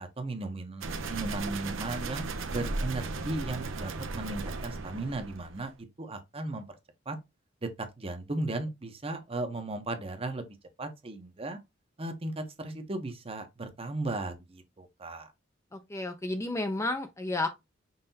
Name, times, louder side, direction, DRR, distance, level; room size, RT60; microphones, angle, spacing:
voice 1, 0.0-2.2 2.5-6.8 7.1-7.2 7.6-11.6 12.0-15.3, right 2 dB, 30° right, 0.8 m, -36 dB
sound 1, 0.8-5.7, right 3 dB, 80° right, 0.7 m, -36 dB
voice 2, 15.7-17.5, left 2 dB, 15° left, 0.5 m, -32 dB
5.5 x 3.3 x 2.7 m
head